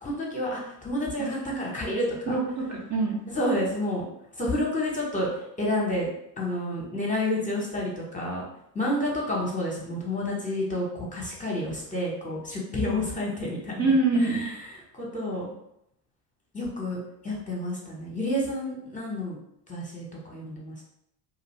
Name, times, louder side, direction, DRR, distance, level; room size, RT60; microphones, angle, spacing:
voice 1, 0.0-2.4 3.3-4.0 4.3-5.3 5.6-6.1 6.4-8.4 8.7-13.9 14.2-14.6 14.9-15.5 16.5-19.4 19.7-20.8, left 1 dB, 15° left, -3 dB, 1.0 m, -29 dB
voice 2, 1.2-1.7 2.3-3.2 13.8-14.4, right 3 dB, 35° right, -3 dB, 0.8 m, -25 dB
2.6 x 2.5 x 3.1 m, 0.77 s
hypercardioid pair, 80°, 48 cm